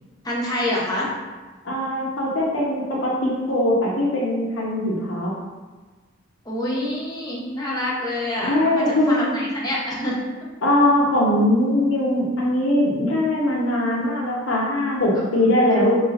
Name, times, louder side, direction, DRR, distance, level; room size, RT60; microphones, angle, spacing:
voice 1, 0.2-1.1 6.4-10.2 15.1-15.8, left 1 dB, 20° left, -5 dB, 0.7 m, -27 dB
voice 2, 1.6-5.3 8.4-9.3 10.6-16.0, left 1 dB, 75° left, -4 dB, 0.9 m, -21 dB
3.2 x 2.4 x 4.2 m, 1.3 s
head